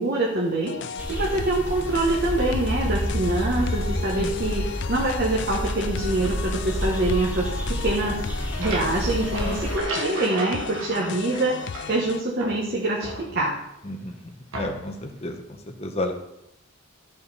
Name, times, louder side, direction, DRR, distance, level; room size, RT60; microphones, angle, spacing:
voice 1, 0.0-13.5, right 2 dB, 45° right, -3 dB, 1.2 m, -25 dB
sound 1, 0.6-12.2, left 7 dB, 55° left, 0.3 m, -36 dB
sound 2, 1.0-9.8, equal, 5° right, 1.0 m, -29 dB
sound 3, 8.3-12.1 12.4-13.7 14.5-15.0, right 1 dB, 60° right, 1.4 m, -35 dB
voice 2, 13.8-16.1, left 1 dB, 30° left, 5 dB, 0.9 m, -32 dB
12.5 x 5.7 x 4.2 m, 0.82 s
head